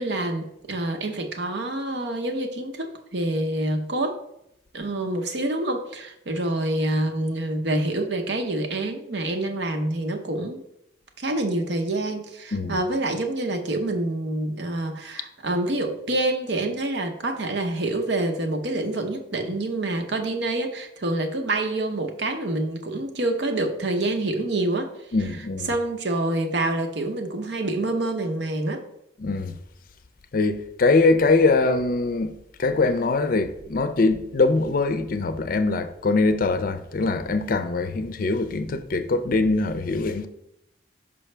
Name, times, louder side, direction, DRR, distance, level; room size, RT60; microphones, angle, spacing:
voice 1, 0.0-4.2 4.7-10.6 11.2-24.9 25.7-28.8, right 2 dB, 65° right, 0.9 m, -27 dB
voice 2, 25.1-25.7 29.2-29.6 30.3-32.3 32.6-40.3, left 3 dB, 50° left, 0.5 m, -22 dB
5.5 x 5.5 x 3.3 m
head